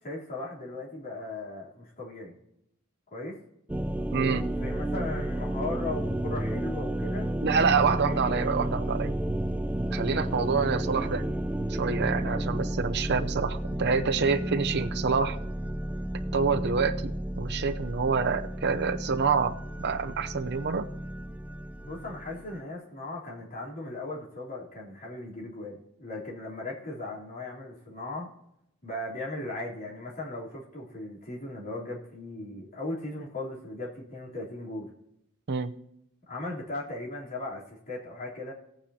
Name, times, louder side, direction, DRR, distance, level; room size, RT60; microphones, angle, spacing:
voice 1, 0.0-2.4 3.1-3.4 4.6-7.3 8.0-8.2 10.0-10.2 12.2-12.4 21.8-28.3 28.8-34.9 36.3-38.5, left 2 dB, 40° left, -5 dB, 3.5 m, -37 dB
sound 1, 3.7-22.6, right 1 dB, 5° right, 0.4 m, -32 dB
voice 2, 4.1-4.5 7.4-9.1 9.9-11.3 11.7-15.4 16.3-17.1 17.4-20.9 35.5-35.7, right 5 dB, 50° right, 7 dB, 0.6 m, -27 dB
18.0 x 9.0 x 2.8 m, 0.79 s
head